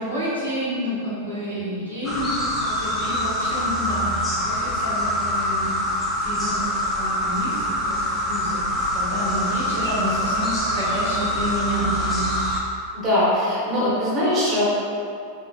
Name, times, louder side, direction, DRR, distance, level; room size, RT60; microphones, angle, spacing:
voice 1, 0.0-5.7 6.2-6.5 6.8-12.3, equal, 85° right, -12 dB, 1.1 m, -29 dB
sound 1, 2.0-12.6, left 1 dB, 15° left, 0.6 m, -25 dB
voice 2, 12.9-14.7, left 1 dB, 25° right, -9 dB, 1.0 m, -21 dB
3.3 x 2.7 x 2.3 m, 2.4 s
figure-of-eight pair, 90°, 0 cm